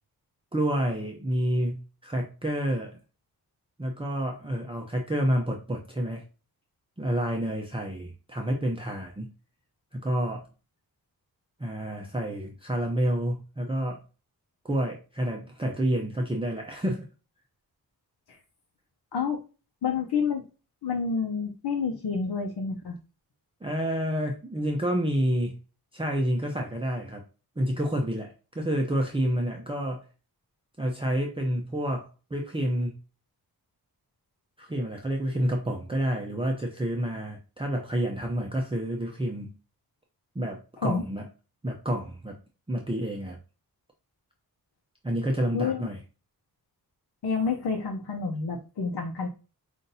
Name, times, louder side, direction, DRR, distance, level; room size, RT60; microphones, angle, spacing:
voice 1, 0.5-3.0 3.8-6.2 7.0-9.3 9.9-10.4 11.6-14.0 14.6-17.0 23.6-25.6 25.9-27.2 27.6-30.0 30.8-32.9 34.6-39.5 40.3-41.3 41.6-42.3 42.7-43.4 45.0-46.0, equal, 15° right, 0 dB, 0.6 m, -29 dB
voice 2, 19.8-20.5 20.8-23.0 40.8-41.0 45.5-45.9 47.2-49.3, left 5 dB, 80° left, 1 dB, 0.8 m, -29 dB
5.7 x 2.6 x 2.6 m, 0.33 s
wide cardioid pair, 130°, 38 cm